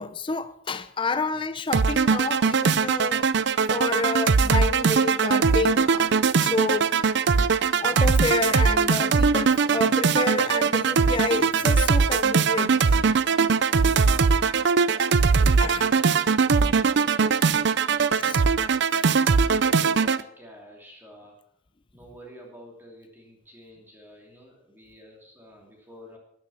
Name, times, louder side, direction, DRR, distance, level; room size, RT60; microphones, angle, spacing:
voice 1, 0.0-3.3 3.7-6.1 6.4-6.9 7.8-12.9 15.6-15.9 18.2-18.4 19.3-19.4, left 3 dB, 25° left, 0.5 m, -29 dB
sound 1, 1.7-20.2, right 5 dB, 60° right, 0.5 m, -21 dB
voice 2, 13.8-14.4 14.8-18.4 19.3-21.4 21.9-26.2, equal, 10° right, 2.7 m, -49 dB
13.0 x 10.5 x 5.7 m
head